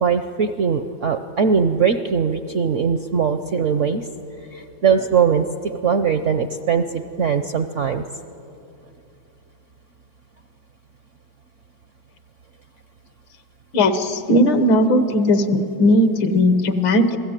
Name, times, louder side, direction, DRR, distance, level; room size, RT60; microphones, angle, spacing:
voice 1, 0.0-4.1 4.5-8.0, right 6 dB, 65° right, 9 dB, 0.7 m, -20 dB
voice 2, 13.7-17.2, left 1 dB, 80° left, 9 dB, 2.1 m, -17 dB
26.5 x 17.5 x 9.0 m, 2.8 s
omnidirectional pair, 2.1 m